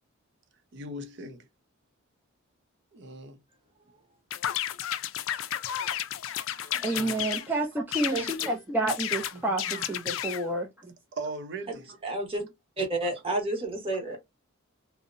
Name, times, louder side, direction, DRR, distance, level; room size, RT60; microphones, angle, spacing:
voice 1, 0.7-1.5 2.9-3.4 6.5-7.3 8.4-8.6 9.3-9.9 11.1-12.1 13.0-13.2, right 2 dB, 60° right, 0.6 m, -40 dB
sound 1, 4.3-7.5 7.9-8.5 8.9-10.4, left 11 dB, 70° left, 0.3 m, -32 dB
voice 2, 6.8-10.9, right 2 dB, 10° right, 0.4 m, -30 dB
voice 3, 12.0-12.4 12.8-14.2, right 2 dB, 30° right, 0.9 m, -30 dB
2.7 x 2.0 x 2.5 m
head